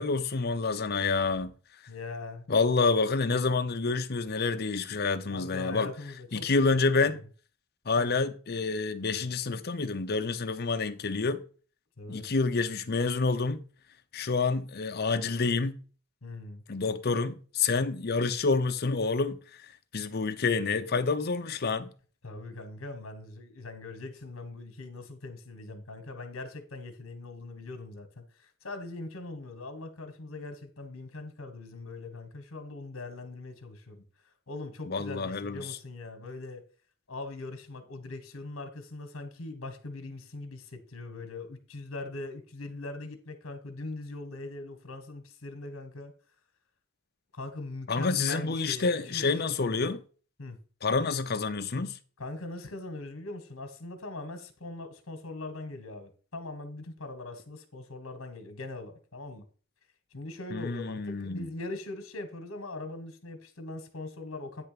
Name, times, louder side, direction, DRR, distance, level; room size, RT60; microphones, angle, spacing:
voice 1, 0.0-1.5 2.5-5.9 6.3-7.2 7.9-11.4 12.1-13.6 14.1-15.8 16.7-19.4 19.9-21.9 34.9-35.8 47.9-50.0 50.8-52.0 60.5-61.5, left 4 dB, 50° left, 0.7 m, -28 dB
voice 2, 1.9-2.5 5.3-7.2 8.0-8.1 12.0-12.2 16.2-16.6 22.2-34.0 34.5-36.6 37.1-46.1 47.3-49.9 50.4-50.6 52.2-59.4 60.1-64.6, left 2 dB, 70° left, 1.4 m, -41 dB
9.3 x 3.3 x 6.7 m
head